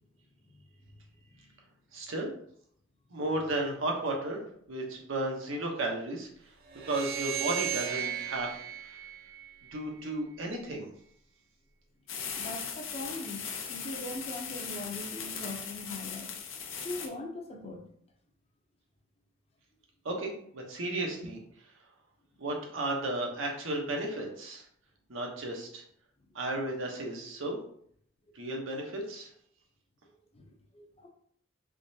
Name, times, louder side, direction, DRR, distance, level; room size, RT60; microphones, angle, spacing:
voice 1, 1.9-2.3 3.1-6.3 6.9-8.6 9.7-10.9 20.0-21.4 22.4-24.6 25.1-25.8 26.3-27.6 28.3-29.3, right 2 dB, 85° right, 0 dB, 0.9 m, -34 dB
sound 1, 6.7-10.0, right 10 dB, 50° right, 0.6 m, -35 dB
sound 2, 12.1-17.1, left 6 dB, 85° left, 0.6 m, -39 dB
voice 2, 12.3-13.4 13.7-16.3 16.8-17.8 30.3-31.1, left 2 dB, 30° left, 3 dB, 0.6 m, -41 dB
3.7 x 3.1 x 2.7 m, 0.65 s
head